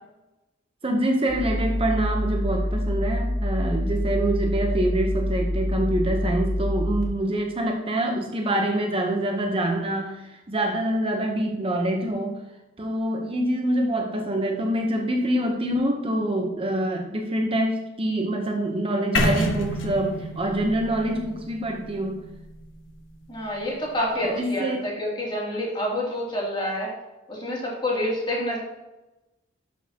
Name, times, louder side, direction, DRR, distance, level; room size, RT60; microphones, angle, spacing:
voice 1, 0.8-12.4 12.8-22.2 23.4-23.5 24.2-24.9, right 1 dB, 30° right, 2 dB, 0.8 m, -25 dB
sound 1, 1.3-7.0, left 1 dB, 55° left, 1.7 m, -26 dB
sound 2, 19.1-23.1, left 1 dB, 85° left, 1.2 m, -28 dB
voice 2, 23.3-26.9 27.3-28.6, left 1 dB, 25° left, -4 dB, 2.7 m, -28 dB
12.0 x 6.3 x 2.8 m, 1.0 s
head